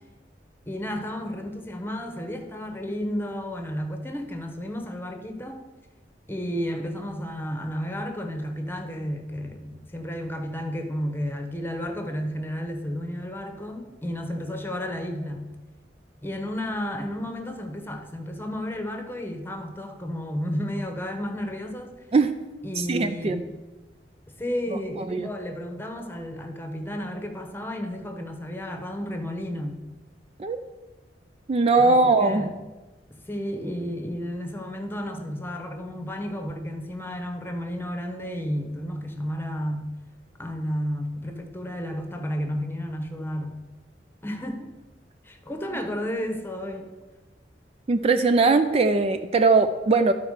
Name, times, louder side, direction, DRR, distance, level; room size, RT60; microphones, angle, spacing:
voice 1, 0.7-5.7 6.3-15.5 16.2-22.0 22.6-23.4 24.4-29.8 31.8-32.5 33.3-39.9 40.4-43.6 44.2-44.7 45.2-46.9, equal, 15° left, 4 dB, 1.0 m, -32 dB
voice 2, 22.8-23.4 25.1-25.3 30.4-30.6 31.5-32.5 47.9-50.1, right 3 dB, 35° right, 9 dB, 0.4 m, -20 dB
11.5 x 4.4 x 6.5 m, 1.2 s
head